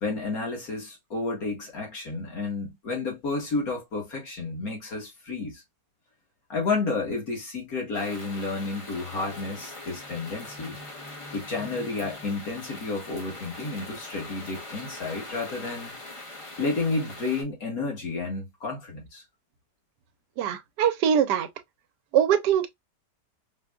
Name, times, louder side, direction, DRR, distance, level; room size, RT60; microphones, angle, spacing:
voice 1, 0.0-5.6 6.5-10.8 11.3-15.9 16.6-19.2, left 3 dB, 60° left, 1.9 m, -31 dB
sound 1, 7.9-17.4, left 2 dB, 30° left, 0.6 m, -42 dB
voice 2, 20.4-21.5 22.1-22.7, right 9 dB, 85° right, 1.2 m, -22 dB
4.9 x 2.3 x 2.2 m
omnidirectional pair, 1.8 m